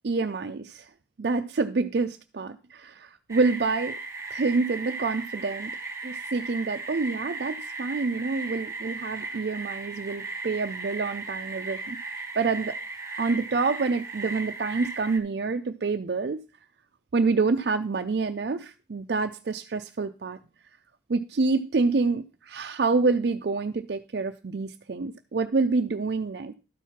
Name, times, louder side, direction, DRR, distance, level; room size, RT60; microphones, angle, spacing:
voice 1, 0.0-0.9 1.2-4.0 4.3-5.7 6.0-12.0 12.4-12.8 13.2-16.4 17.1-20.4 21.1-26.5, right 4 dB, 65° right, 6 dB, 0.5 m, -27 dB
sound 1, 3.3-15.2, right 3 dB, 15° right, 1.3 m, -36 dB
12.5 x 4.6 x 5.7 m, 0.34 s
head